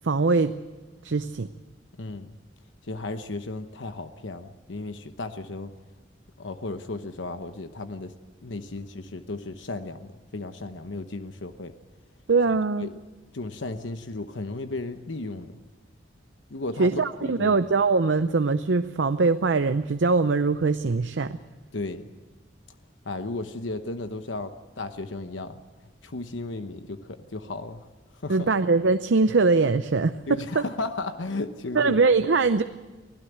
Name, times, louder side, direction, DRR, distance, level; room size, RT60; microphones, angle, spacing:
voice 1, 0.0-0.6 1.0-1.5 12.3-12.9 16.8-21.4 28.3-30.6 31.7-32.6, right 4 dB, 75° right, 11 dB, 0.6 m, -22 dB
voice 2, 2.0-2.4 2.9-5.7 6.4-8.1 8.4-11.7 12.8-12.9 13.3-15.5 16.5-16.9 17.2-17.6 21.7-22.1 23.0-25.6 26.0-27.9 28.2-28.5 30.3-32.0, left 2 dB, 85° left, 9 dB, 1.0 m, -34 dB
24.5 x 16.0 x 8.0 m, 1.3 s
head